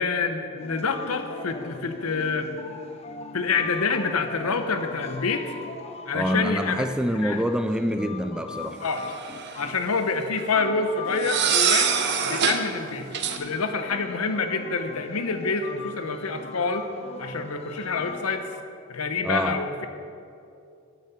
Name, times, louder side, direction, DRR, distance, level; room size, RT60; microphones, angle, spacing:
voice 1, 0.0-2.5 3.3-5.5 6.1-6.9 7.1-7.4 8.8-9.1 9.6-11.9 12.2-13.1 13.4-16.9 17.2-18.5 18.9-19.9, left 4 dB, 85° left, 7 dB, 0.9 m, -27 dB
sound 1, 0.6-18.4, left 3 dB, 30° left, 0.8 m, -40 dB
voice 2, 6.1-8.8 19.2-19.9, equal, 5° right, 9 dB, 0.4 m, -26 dB
sound 2, 8.9-9.6 11.2-12.6 13.1-13.4, right 7 dB, 50° right, 0.8 m, -24 dB
12.5 x 7.4 x 5.7 m, 2.6 s
head